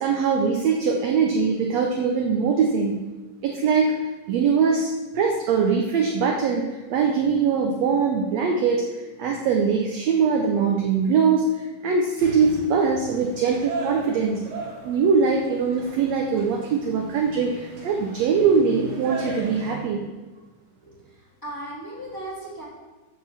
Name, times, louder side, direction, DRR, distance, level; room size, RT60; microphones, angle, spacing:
voice 1, 0.0-3.0 3.4-4.0 4.3-8.9 9.2-14.5 14.8-20.0, right 5 dB, 70° right, 1 dB, 1.6 m, -22 dB
sound 1, 12.2-19.8, right 2 dB, 90° right, 3.7 m, -37 dB
voice 2, 20.8-22.6, right 1 dB, 5° left, -8 dB, 2.9 m, -37 dB
8.4 x 5.6 x 7.3 m, 1.2 s
omnidirectional pair, 3.9 m